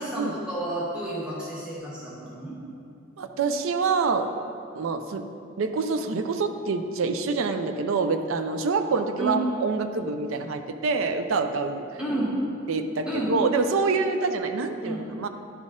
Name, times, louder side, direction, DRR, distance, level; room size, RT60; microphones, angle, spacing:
voice 1, 0.0-2.6 9.2-9.4 12.0-12.4 13.1-13.3 14.8-15.0, right 1 dB, 5° right, -8 dB, 1.3 m, -30 dB
voice 2, 3.2-4.3 4.7-5.2 5.6-11.8 12.7-15.3, right 4 dB, 80° right, 7 dB, 0.4 m, -26 dB
11.0 x 4.1 x 3.6 m, 2.6 s
head